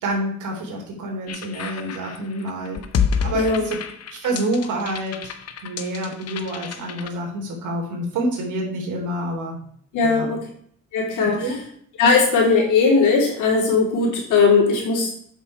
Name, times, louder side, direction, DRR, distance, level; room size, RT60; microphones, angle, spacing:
voice 1, 0.0-2.8 3.2-3.8 4.1-5.3 5.6-9.6 10.0-10.3 11.2-11.6, right 1 dB, 80° right, 1 dB, 3.2 m, -27 dB
sound 1, 1.3-7.1, left 7 dB, 55° left, 0.9 m, -29 dB
voice 2, 3.3-3.7 9.9-10.4 10.9-11.4 12.0-15.1, left 4 dB, 85° left, -2 dB, 3.7 m, -18 dB
8.2 x 6.4 x 4.9 m, 0.63 s
cardioid pair, 90°, 30 cm